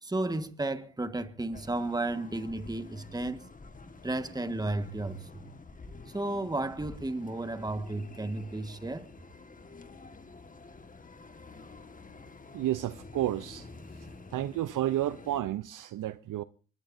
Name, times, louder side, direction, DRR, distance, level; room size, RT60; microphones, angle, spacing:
voice 1, 0.0-3.4 4.0-5.5 6.1-9.1, right 2 dB, 10° right, 1.5 m, -33 dB
sound 1, 1.5-15.4, left 3 dB, 20° left, 1.7 m, -49 dB
voice 2, 12.5-13.7 14.3-16.4, right 13 dB, 55° right, 0.7 m, -31 dB
24.0 x 19.5 x 2.7 m
supercardioid pair, 65°, 37 cm